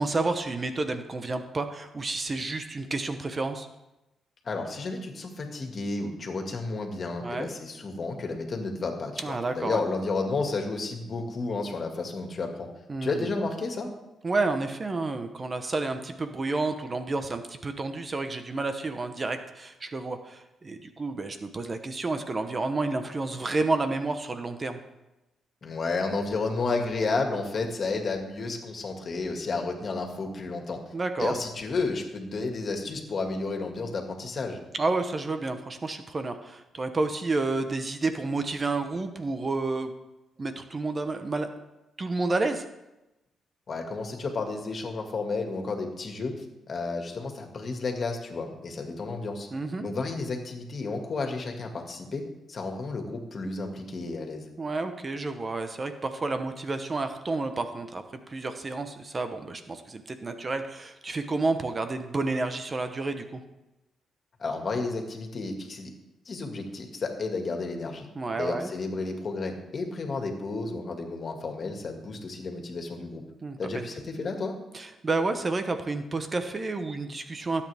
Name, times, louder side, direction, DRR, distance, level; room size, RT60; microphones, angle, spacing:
voice 1, 0.0-3.7 7.2-7.5 9.2-9.8 12.9-13.3 14.2-24.8 30.9-31.3 34.8-39.9 40.4-41.5 42.0-42.6 49.5-49.9 54.6-58.0 58.3-63.4 68.1-68.7 73.4-73.8 74.7-77.6, right 3 dB, 35° right, 8 dB, 1.0 m, -30 dB
voice 2, 4.4-12.7 13.0-13.9 25.6-30.8 31.2-34.6 43.7-49.5 49.8-52.2 52.5-54.5 64.4-65.9 66.3-68.1 68.4-73.2 73.6-74.6, left 3 dB, 45° left, 3 dB, 2.1 m, -32 dB
19.0 x 8.5 x 3.5 m, 0.98 s
cardioid pair, 80°, 0 cm